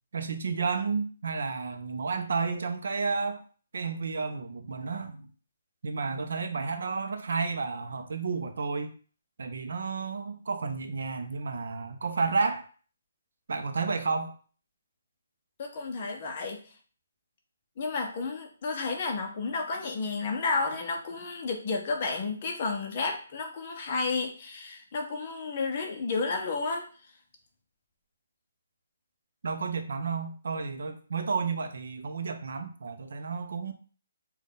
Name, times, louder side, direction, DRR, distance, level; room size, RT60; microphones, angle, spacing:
voice 1, 0.1-3.4 3.7-5.3 5.8-8.9 9.4-12.6 13.5-14.3 29.4-33.7, right 4 dB, 60° right, 7 dB, 0.5 m, -31 dB
voice 2, 15.6-16.6 17.8-26.9, left 4 dB, 25° left, 2 dB, 0.6 m, -31 dB
3.8 x 2.2 x 3.7 m, 0.40 s
hypercardioid pair, 175°, 0 cm